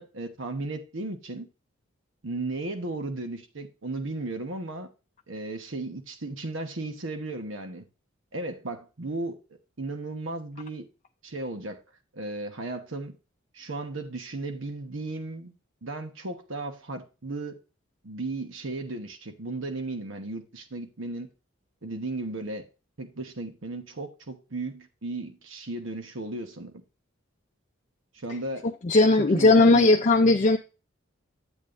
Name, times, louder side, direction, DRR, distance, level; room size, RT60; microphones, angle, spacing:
voice 1, 0.0-1.5 2.2-4.9 5.3-7.8 8.3-9.4 9.8-10.8 11.2-11.8 12.1-13.2 13.5-15.5 15.8-17.6 18.0-21.3 21.8-22.7 23.0-26.7 28.1-28.7 29.2-30.0 30.3-30.4, right 2 dB, 75° right, 1.1 m, -35 dB
voice 2, 28.8-30.6, left 2 dB, 35° left, 0.5 m, -18 dB
8.9 x 8.2 x 2.5 m
head